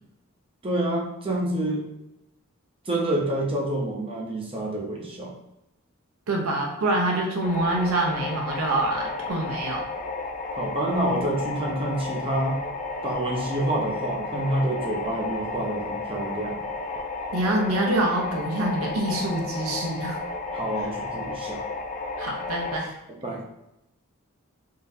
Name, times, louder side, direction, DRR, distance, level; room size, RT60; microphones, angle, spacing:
voice 1, 0.6-1.8 2.9-5.3 10.5-12.6 13.0-16.6 20.5-21.6 23.2-23.4, right 1 dB, 25° right, -2 dB, 0.6 m, -27 dB
voice 2, 6.3-9.9 17.3-20.2 20.8-20.9 22.2-22.9, right 1 dB, 75° right, 0 dB, 0.6 m, -26 dB
sound 1, 7.4-22.8, left 3 dB, 35° left, 0.4 m, -33 dB
3.7 x 2.6 x 2.7 m, 0.87 s
head